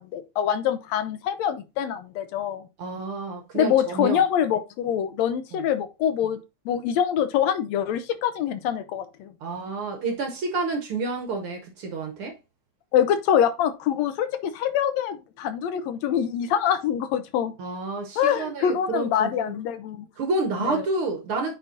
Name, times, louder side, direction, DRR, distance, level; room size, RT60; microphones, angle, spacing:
voice 1, 0.0-2.7 3.5-6.4 6.7-9.3 12.9-17.5 18.2-20.1 20.6-20.8, left 9 dB, 80° left, 1.7 m, -25 dB
voice 2, 2.8-4.2 5.5-5.6 9.4-12.4 17.6-19.5 20.2-21.6, right 3 dB, 65° right, 1.4 m, -29 dB
8.9 x 4.4 x 2.7 m
omnidirectional pair, 3.4 m